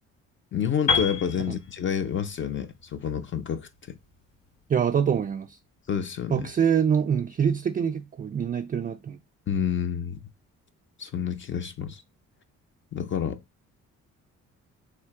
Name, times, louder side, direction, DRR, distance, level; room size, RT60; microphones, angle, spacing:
voice 1, 0.5-3.7 5.9-6.5 9.5-10.2 11.0-12.0 12.9-13.4, left 8 dB, 40° left, 0.5 m, -29 dB
Piano, 0.9-4.8, left 6 dB, 75° left, 2.2 m, -31 dB
voice 2, 4.7-5.6 6.3-9.2, right 7 dB, 30° right, 0.3 m, -25 dB
3.3 x 2.8 x 4.6 m
cardioid pair, 90°, 30 cm